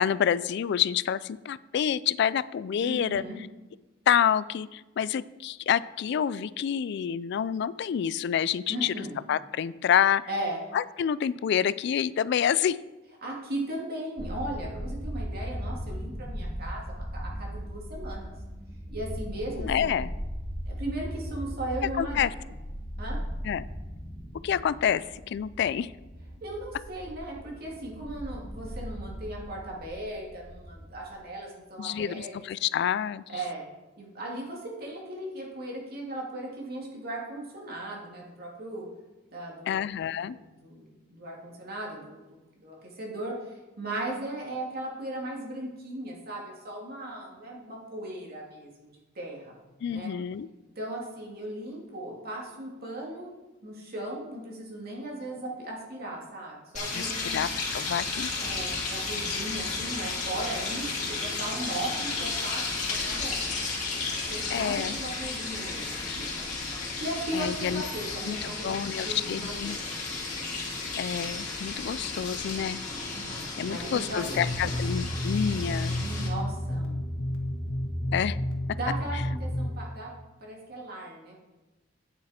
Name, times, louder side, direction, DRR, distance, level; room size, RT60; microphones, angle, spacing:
voice 1, 0.0-3.2 4.1-8.9 9.3-10.2 10.7-12.8 19.6-20.1 22.0-22.3 23.4-23.6 24.4-25.9 31.8-33.2 39.7-40.4 49.8-50.5 56.9-58.3 64.5-65.0 67.3-67.8 68.3-69.8 71.0-72.8 73.6-75.9 78.1-78.4 78.7-78.8, left 8 dB, 60° left, 18 dB, 0.3 m, -28 dB
voice 2, 2.8-3.4 8.7-9.2 10.3-10.6 13.2-18.3 18.9-20.1 20.7-22.3 23.0-23.2 26.4-32.3 33.3-33.6 34.0-38.9 39.3-39.9 40.2-49.6 49.9-50.1 50.8-53.3 53.6-57.4 58.4-62.6 63.0-63.4 64.3-68.8 69.0-69.9 73.1-74.4 75.9-77.0 78.7-80.1 80.4-81.3, right 1 dB, 55° right, -2 dB, 2.4 m, -37 dB
sound 1, 14.2-31.2, equal, 20° right, 1.6 m, -38 dB
sound 2, 56.7-76.3, left 3 dB, 40° left, 2.5 m, -33 dB
sound 3, 74.3-79.7, left 1 dB, 80° left, 1.4 m, -31 dB
9.0 x 7.3 x 4.3 m, 1.1 s
head